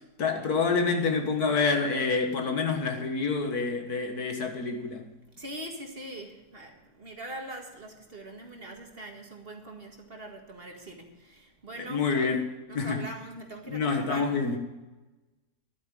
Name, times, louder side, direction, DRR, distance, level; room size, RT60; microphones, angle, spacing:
voice 1, 0.0-5.1 11.8-12.4 12.7-13.1 13.6-14.6, left 4 dB, 75° left, 2.1 m, -27 dB
voice 2, 5.4-12.1 12.7-14.3, right 1 dB, 35° right, 2.0 m, -42 dB
12.0 x 9.1 x 7.4 m
omnidirectional pair, 1.7 m